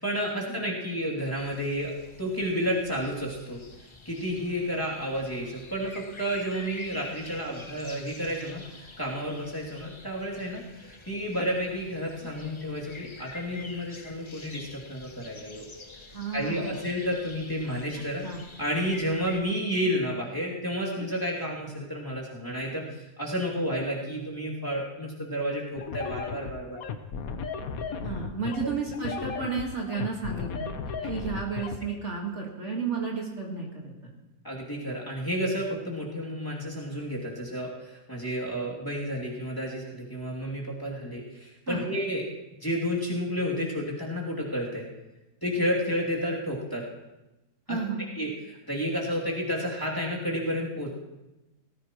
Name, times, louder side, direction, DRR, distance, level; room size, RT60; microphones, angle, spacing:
voice 1, 0.0-1.9 2.2-3.6 4.0-15.6 16.3-18.2 18.6-26.8 34.4-42.2 42.6-44.9 45.4-46.8 47.7-47.8 48.1-50.9, equal, 10° left, -5 dB, 2.6 m, -31 dB
sound 1, 1.4-19.4, left 3 dB, 30° left, 0.5 m, -47 dB
voice 2, 16.1-16.9 18.2-18.4 28.0-30.7 31.0-34.1 41.7-41.9 47.7-48.0, right 5 dB, 45° right, -2 dB, 2.0 m, -32 dB
sound 2, 25.8-31.8, left 5 dB, 65° left, 1.3 m, -35 dB
18.5 x 15.0 x 3.0 m, 1.0 s
omnidirectional pair, 1.8 m